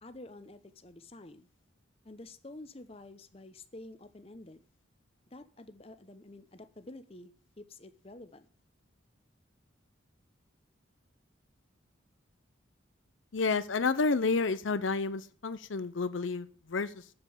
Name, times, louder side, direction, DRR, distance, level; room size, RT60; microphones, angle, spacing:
voice 1, 0.0-1.5 2.0-4.6 5.3-7.3 7.6-8.5, left 2 dB, 30° left, 11 dB, 0.8 m, -49 dB
voice 2, 13.3-17.1, left 4 dB, 75° left, 14 dB, 0.7 m, -30 dB
7.9 x 7.6 x 8.5 m, 0.43 s
head